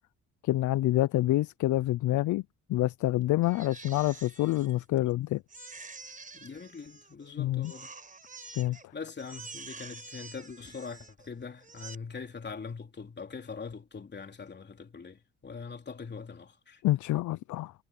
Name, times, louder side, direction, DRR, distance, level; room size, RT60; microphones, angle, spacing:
voice 1, 0.4-2.4 2.7-5.4 7.4-7.7 8.6-8.9 16.8-17.7, left 16 dB, 75° left, 0.5 m, -27 dB
Crying sobbing, 3.4-5.1 5.5-7.3 7.6-8.8 9.2-11.3 11.6-12.0, right 4 dB, 25° right, 5.0 m, -47 dB
voice 2, 6.3-7.9 8.9-16.8, left 5 dB, 35° left, 3.5 m, -42 dB
cardioid pair, 90°, 30 cm